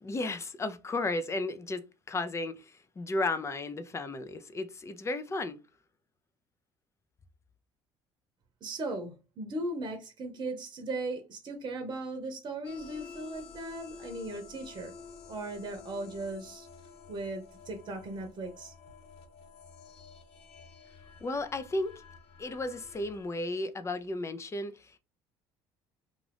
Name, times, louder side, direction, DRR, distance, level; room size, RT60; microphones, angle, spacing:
voice 1, 0.0-5.6 21.2-22.0 22.4-24.7, left 2 dB, 25° left, 0.6 m, -34 dB
voice 2, 8.6-14.9 15.3-16.7 17.1-18.7, right 2 dB, 40° right, 0.9 m, -37 dB
sound 1, 12.6-23.3, left 5 dB, 65° left, 0.7 m, -51 dB
2.5 x 2.4 x 3.4 m
supercardioid pair, 75°, 11 cm